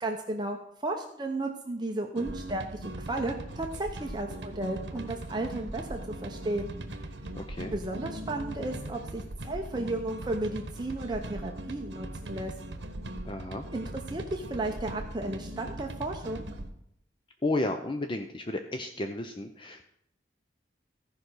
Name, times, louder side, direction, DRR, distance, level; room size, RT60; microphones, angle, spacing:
voice 1, 0.0-6.7 7.7-12.5 13.7-16.4, right 2 dB, 25° right, 2 dB, 0.8 m, -34 dB
sound 1, 2.1-16.7, right 1 dB, 75° right, 1.1 m, -40 dB
voice 2, 7.3-7.7 13.2-13.7 17.4-19.8, left 2 dB, 25° left, 6 dB, 0.6 m, -32 dB
14.5 x 5.2 x 6.3 m, 0.74 s
head